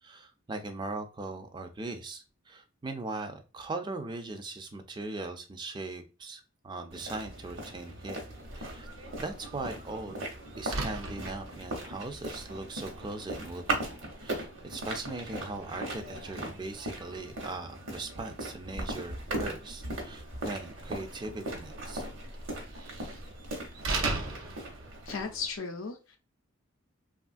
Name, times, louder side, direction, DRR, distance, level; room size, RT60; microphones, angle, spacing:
voice 1, 0.0-8.2 8.5-8.9 9.2-10.2 10.6-13.9 14.2-22.0, right 2 dB, 20° right, 7 dB, 0.3 m, -39 dB
sound 1, 6.9-25.5, right 2 dB, 65° right, 0.9 m, -39 dB
Slam, 8.4-25.6, right 3 dB, 90° right, 0.6 m, -42 dB
voice 2, 25.1-26.2, left 5 dB, 75° left, 4 dB, 0.5 m, -36 dB
3.0 x 2.4 x 2.5 m, 0.33 s
head